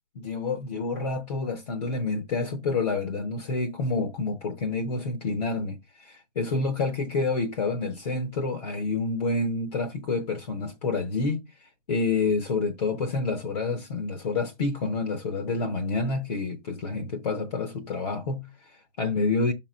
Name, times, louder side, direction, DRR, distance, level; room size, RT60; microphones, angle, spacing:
voice 1, 0.2-19.5, left 3 dB, 30° left, 0.8 m, -28 dB
5.9 x 4.3 x 6.1 m
hypercardioid pair, 170°, 39 cm